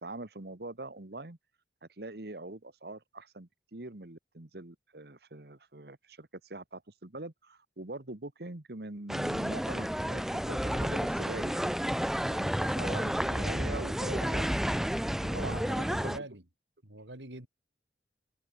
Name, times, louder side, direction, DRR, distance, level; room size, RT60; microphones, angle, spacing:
voice 1, 0.0-1.4 1.8-11.8 12.3-14.8 15.2-16.1, right 2 dB, 60° right, 1.6 m, -43 dB
sound 1, 9.1-16.2, equal, ahead, 0.5 m, -31 dB
voice 2, 15.3-16.4 16.8-17.5, right 2 dB, 90° right, 5.5 m, -45 dB
head